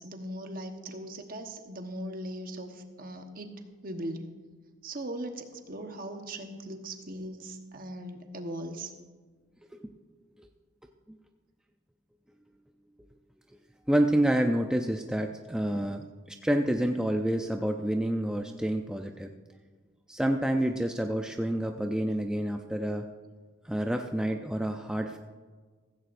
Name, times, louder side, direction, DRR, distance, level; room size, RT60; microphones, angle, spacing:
voice 1, 0.0-4.4 4.8-8.9, right 1 dB, 45° right, 5 dB, 1.1 m, -39 dB
voice 2, 13.9-19.3 20.1-23.1 23.6-25.2, right 1 dB, 5° right, 3 dB, 0.4 m, -28 dB
15.5 x 15.5 x 2.6 m, 1.4 s
head